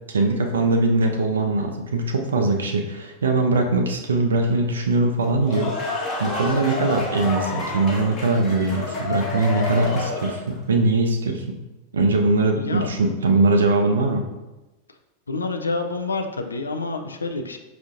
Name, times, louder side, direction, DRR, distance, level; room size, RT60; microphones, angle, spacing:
voice 1, 0.1-5.7 6.2-11.6 11.9-14.3, right 2 dB, 70° right, 3 dB, 0.4 m, -21 dB
sound 1, 5.2-10.5, left 3 dB, 30° left, 0.9 m, -29 dB
voice 2, 12.5-12.9 15.3-17.6, left 3 dB, 75° left, 5 dB, 0.3 m, -28 dB
5.2 x 2.4 x 2.5 m, 1.1 s
figure-of-eight pair, 90°, 0 cm